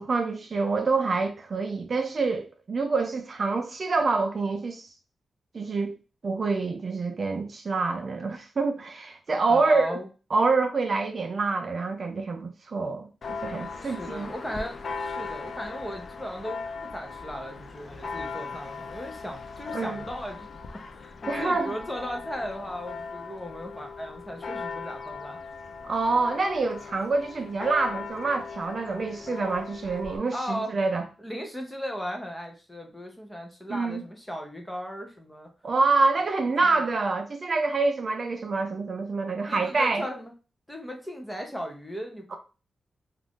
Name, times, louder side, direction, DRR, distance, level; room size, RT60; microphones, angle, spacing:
voice 1, 0.0-4.9 5.5-5.9 6.2-10.0 10.3-13.1 13.4-14.3 19.7-20.0 21.3-21.7 25.8-31.0 33.7-34.0 35.6-40.0, right 3 dB, 40° right, 0.4 m, -26 dB
voice 2, 9.5-10.1 13.8-16.6 16.9-20.5 20.9-25.4 30.3-30.7 31.2-35.5 36.6-36.8 39.5-40.3 40.7-42.4, equal, 5° left, 0.7 m, -36 dB
Church bell, 13.2-30.2, left 4 dB, 50° left, 0.3 m, -38 dB
2.5 x 2.4 x 3.5 m
wide cardioid pair, 145°, 0 cm